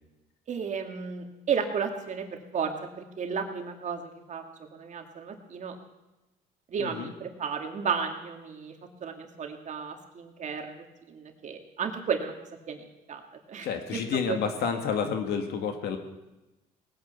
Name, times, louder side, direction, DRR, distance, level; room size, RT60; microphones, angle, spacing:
voice 1, 0.5-4.4 4.7-5.7 6.7-12.3 12.7-13.2 13.5-14.0 14.3-14.4, right 6 dB, 45° right, 4 dB, 2.2 m, -33 dB
voice 2, 6.8-7.1 13.6-16.0, left 6 dB, 75° left, 6 dB, 2.2 m, -30 dB
19.5 x 9.2 x 6.9 m, 1.0 s
cardioid pair, 110°, 17 cm